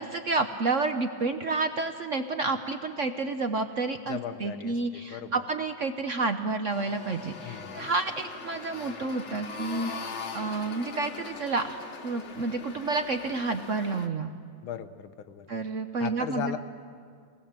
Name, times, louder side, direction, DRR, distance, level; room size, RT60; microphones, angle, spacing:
voice 1, 0.0-14.3 15.5-16.6, right 3 dB, 60° right, 7 dB, 0.8 m, -30 dB
voice 2, 4.1-5.4 7.4-7.9 14.6-15.5 16.0-16.6, left 9 dB, 90° left, 10 dB, 1.8 m, -37 dB
sound 1, 6.7-14.1, left 4 dB, 40° left, 1.3 m, -41 dB
25.0 x 19.0 x 7.4 m, 2.2 s
omnidirectional pair, 2.2 m